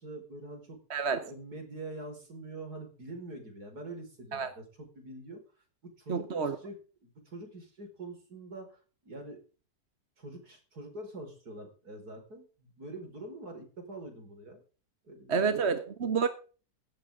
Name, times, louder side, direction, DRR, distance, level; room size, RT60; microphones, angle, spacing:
voice 1, 0.0-0.8 1.3-5.4 5.8-6.8 7.0-8.8 9.1-9.4 10.2-14.6 15.1-15.5, right 2 dB, 65° right, 5.4 m, -45 dB
voice 2, 0.9-1.3 4.3-4.5 6.1-6.6 15.3-16.3, right 5 dB, 45° right, 1.4 m, -29 dB
16.5 x 13.0 x 3.8 m
omnidirectional pair, 1.8 m